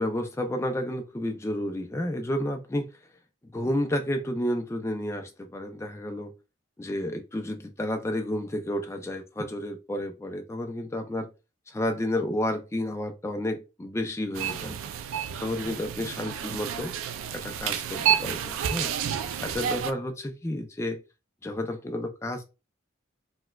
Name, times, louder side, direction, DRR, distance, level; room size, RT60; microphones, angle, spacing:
voice 1, 0.0-2.9 3.5-6.3 6.8-11.3 11.7-14.8 15.4-16.9 17.3-18.9 19.4-21.0 21.4-22.4, left 1 dB, 15° left, 0.3 m, -31 dB
sound 1, 14.3-19.9, right 9 dB, 85° right, 0.3 m, -30 dB
4.2 x 2.2 x 2.2 m
head